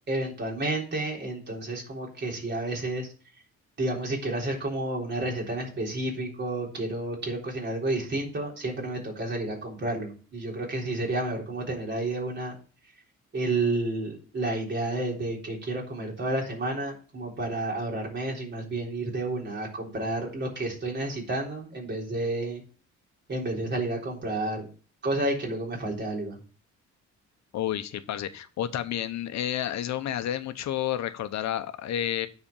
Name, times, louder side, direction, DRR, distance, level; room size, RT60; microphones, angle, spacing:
voice 1, 0.1-3.1 3.8-12.6 13.3-22.6 23.3-24.7 25.0-26.4, right 2 dB, 35° right, -2 dB, 3.8 m, -30 dB
voice 2, 27.5-32.3, left 11 dB, 65° left, 10 dB, 1.0 m, -30 dB
9.9 x 4.3 x 7.0 m, 0.38 s
cardioid pair, 130°, 30 cm